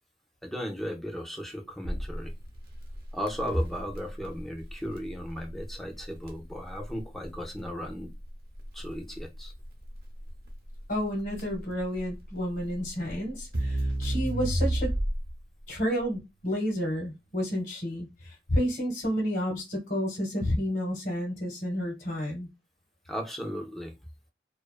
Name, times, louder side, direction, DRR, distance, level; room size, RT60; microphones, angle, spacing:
voice 1, 0.4-2.3 3.1-8.1 8.7-9.5 23.1-23.9, equal, ahead, 0.4 m, -35 dB
Crackle, 1.8-15.4, right 1 dB, 55° right, 0.7 m, -33 dB
voice 2, 10.9-14.9 15.7-22.5, equal, 70° left, 0.9 m, -30 dB
2.3 x 2.3 x 2.3 m
head